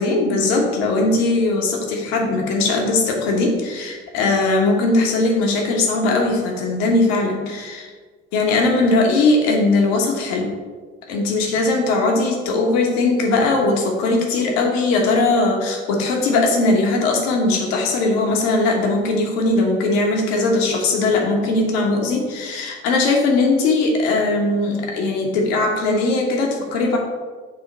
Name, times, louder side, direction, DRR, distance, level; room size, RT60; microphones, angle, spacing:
voice 1, 0.0-7.8 8.3-10.5 11.1-27.0, left 2 dB, 75° left, 0 dB, 1.3 m, -19 dB
7.9 x 2.9 x 4.1 m, 1.4 s
hypercardioid pair, 65°, 31 cm